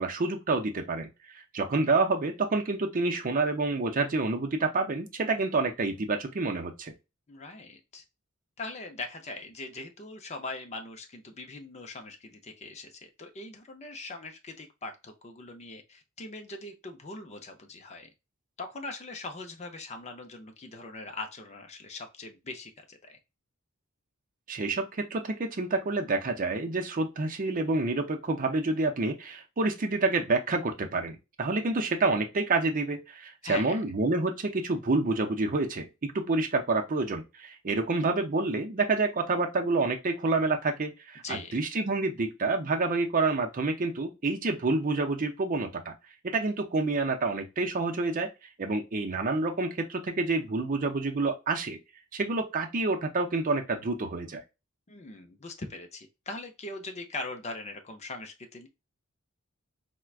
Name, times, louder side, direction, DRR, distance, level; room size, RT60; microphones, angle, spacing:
voice 1, 0.0-6.9 24.5-45.9 46.2-48.3 48.6-51.8 52.1-54.4, right 3 dB, 40° right, 4 dB, 0.6 m, -28 dB
voice 2, 7.3-8.0 8.6-18.1 18.6-23.2 33.4-33.8 41.2-41.6 54.9-58.7, left 2 dB, 30° left, 5 dB, 0.5 m, -41 dB
4.5 x 2.2 x 2.3 m, 0.25 s
head